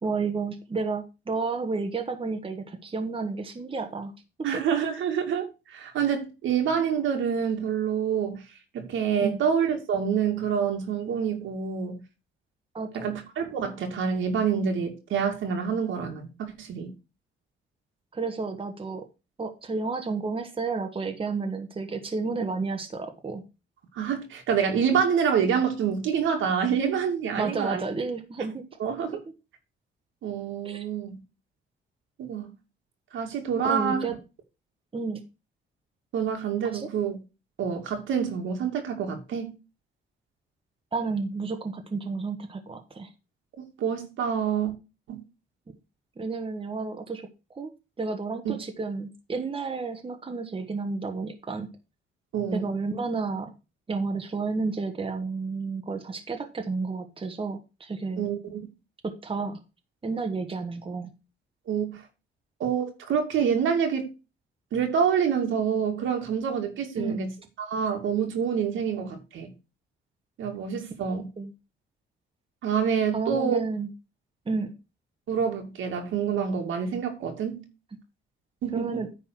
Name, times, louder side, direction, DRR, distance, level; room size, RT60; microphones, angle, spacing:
voice 1, 0.0-4.1 4.4-4.5 9.2-9.4 12.7-13.1 18.1-19.0 19.4-23.4 27.4-28.6 30.6-30.9 33.6-34.1 34.9-35.2 36.7-36.9 40.9-43.1 46.2-47.3 47.5-47.7 48.0-51.7 52.5-53.5 53.9-58.3 59.0-59.6 60.0-61.1 67.0-67.2 71.4-71.5 73.1-73.9 74.4-74.7 78.7-79.1, right 4 dB, 25° right, 1.4 m, -31 dB
voice 2, 4.4-8.4 8.7-11.9 12.9-16.9 23.9-27.8 28.8-29.2 30.2-31.2 32.2-32.5 33.1-34.1 36.1-37.2 37.6-39.5 43.8-44.7 45.1-45.2 52.3-52.7 58.2-58.6 61.7-62.0 62.6-64.1 64.7-67.3 67.7-69.5 70.4-71.3 72.6-73.6 75.3-77.6 78.6-79.0, right 7 dB, 80° right, 2.4 m, -27 dB
9.8 x 4.2 x 6.0 m
cardioid pair, 90°, 20 cm